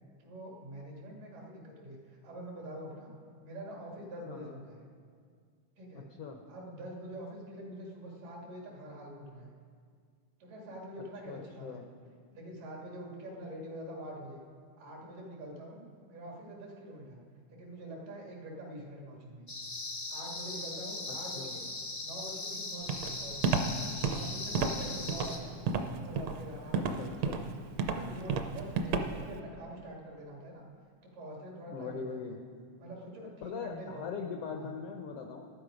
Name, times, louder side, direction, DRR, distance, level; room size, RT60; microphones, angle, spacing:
voice 1, 0.2-3.1 3.4-4.8 5.8-6.1 6.5-9.5 10.4-11.8 12.3-14.4 14.8-15.8 16.1-17.2 17.5-19.5 20.1-21.7 22.0-23.6 24.0-25.6 25.9-27.3 27.8-30.7 31.0-32.4 32.8-34.0 34.5-34.7, right 1 dB, 90° right, -2 dB, 3.9 m, -45 dB
voice 2, 4.3-4.6 6.2-6.4 11.3-11.8 21.1-21.6 26.8-27.4 31.7-32.4 33.4-35.5, left 5 dB, 90° left, 3 dB, 1.3 m, -41 dB
sound 1, 19.5-25.4, left 2 dB, 70° left, 0.4 m, -39 dB
Walk footsteps, 22.9-29.4, right 5 dB, 70° right, 1.6 m, -31 dB
12.5 x 12.0 x 5.1 m, 2.1 s
omnidirectional pair, 3.6 m